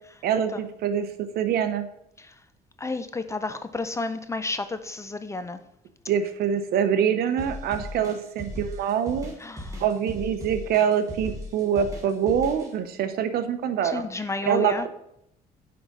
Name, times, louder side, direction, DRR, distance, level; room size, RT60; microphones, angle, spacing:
voice 1, 0.2-1.9 6.1-9.3 9.8-14.9, right 8 dB, 65° right, 10 dB, 0.7 m, -25 dB
voice 2, 2.8-5.6 8.0-8.1 9.4-9.8 13.8-14.9, left 3 dB, 15° left, 11 dB, 0.4 m, -31 dB
sound 1, 7.4-12.7, left 1 dB, 20° right, 1.9 m, -37 dB
6.0 x 4.8 x 5.3 m, 0.77 s
cardioid pair, 110°, 17 cm